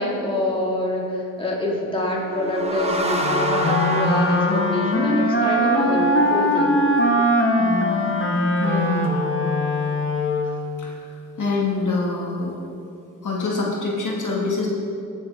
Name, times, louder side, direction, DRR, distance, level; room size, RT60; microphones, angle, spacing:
voice 1, 0.0-6.8, left 1 dB, 15° left, -4 dB, 2.1 m, -25 dB
sound 1, 2.2-5.8, right 1 dB, 20° right, 1.0 m, -28 dB
Wind instrument woodwind instrument, 3.2-10.7, left 1 dB, 35° left, 1.3 m, -21 dB
voice 2, 7.6-9.1 10.8-11.1 11.4-12.5 13.2-14.7, left 3 dB, 60° left, -4 dB, 2.0 m, -26 dB
18.0 x 6.7 x 3.6 m, 2.6 s
cardioid pair, 85°, 34 cm